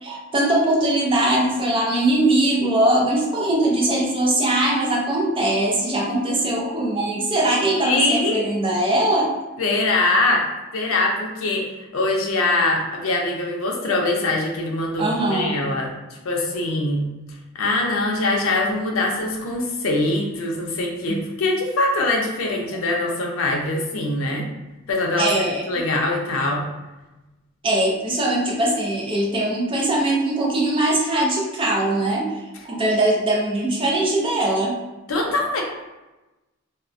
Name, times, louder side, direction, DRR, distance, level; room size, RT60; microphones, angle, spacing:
voice 1, 0.0-9.3 15.0-15.6 21.1-21.2 25.2-25.6 27.6-32.3 32.6-34.8, right 1 dB, 25° right, -2 dB, 0.5 m, -21 dB
voice 2, 7.8-8.4 9.6-10.5 10.7-15.9 16.2-17.1 17.6-24.5 24.9-26.6 35.1-35.6, left 2 dB, 85° left, 0 dB, 0.5 m, -23 dB
2.3 x 2.1 x 2.5 m, 1.1 s
head